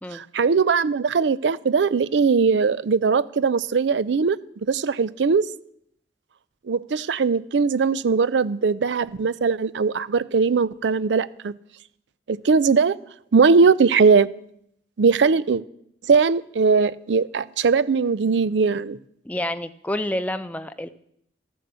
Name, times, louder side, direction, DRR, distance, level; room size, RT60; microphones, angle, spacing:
voice 1, 0.1-4.4 4.7-5.5 6.6-11.5 12.3-13.0 13.3-14.3 15.0-15.6 16.1-19.0, right 5 dB, 85° right, 17 dB, 0.5 m, -20 dB
voice 2, 19.3-20.9, left 1 dB, 10° left, 11 dB, 0.5 m, -28 dB
13.5 x 7.7 x 6.9 m, 0.71 s
head